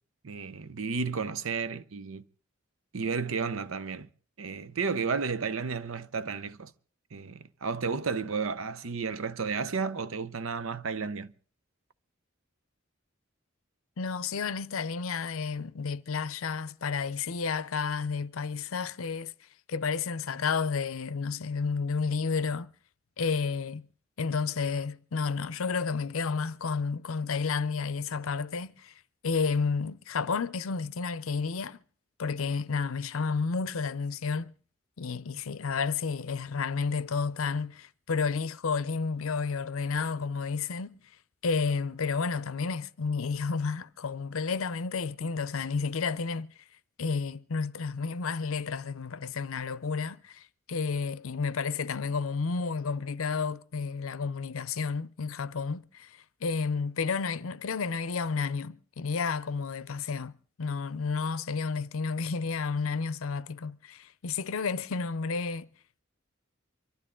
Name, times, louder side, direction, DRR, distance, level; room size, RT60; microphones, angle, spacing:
voice 1, 0.2-2.2 2.9-4.1 4.4-6.7 7.1-11.3, right 5 dB, 75° right, 0.7 m, -32 dB
voice 2, 14.0-19.3 19.7-22.7 23.2-23.9 24.2-28.9 29.2-31.8 32.2-34.5 35.0-41.0 41.4-46.5 47.0-60.3 60.6-65.7, left 5 dB, 80° left, 0.6 m, -31 dB
24.5 x 12.5 x 3.8 m
head